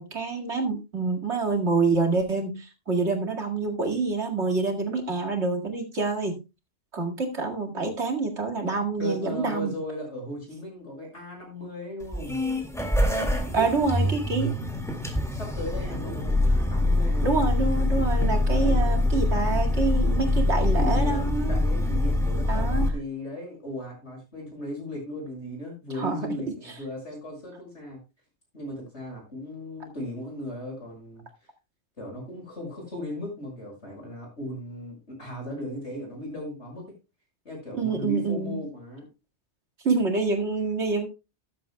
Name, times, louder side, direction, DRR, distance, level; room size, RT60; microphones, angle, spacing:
voice 1, 0.0-6.4 6.9-9.7 13.5-14.5 17.2-21.6 22.5-22.9 25.9-26.2 37.7-38.6 39.8-41.1, right 3 dB, 80° right, 1 dB, 2.4 m, -27 dB
voice 2, 9.0-12.4 13.5-14.3 15.2-17.3 18.4-18.9 20.7-28.0 28.5-31.2 32.0-36.9 37.4-39.1, left 1 dB, 85° left, 0 dB, 6.4 m, -36 dB
Server Startup, 12.0-22.9, left 1 dB, 5° left, 2.0 m, -24 dB
13.5 x 11.5 x 2.2 m, 0.27 s
omnidirectional pair, 1.1 m